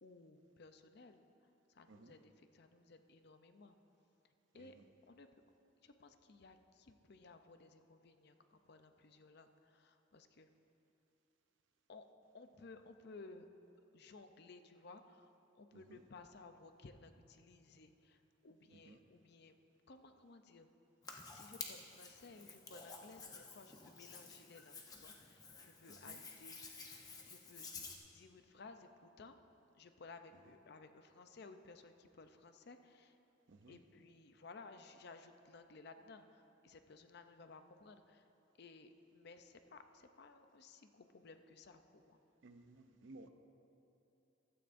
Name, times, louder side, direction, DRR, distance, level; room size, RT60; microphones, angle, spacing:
voice 1, 0.0-3.8 4.2-4.8 5.1-5.3 5.8-10.5 11.9-12.0 12.3-13.5 13.9-19.6 19.9-20.7 21.0-26.9 27.2-27.7 28.1-29.4 29.8-33.2 33.7-38.3 38.6-42.2, left 3 dB, 55° left, 8 dB, 0.5 m, -58 dB
Hands, 21.0-28.0, left 4 dB, 20° left, 0.8 m, -52 dB
voice 2, 25.9-26.2 33.5-33.8 42.4-43.3, right 2 dB, 65° right, 7 dB, 0.6 m, -58 dB
15.5 x 12.5 x 2.6 m, 2.9 s
head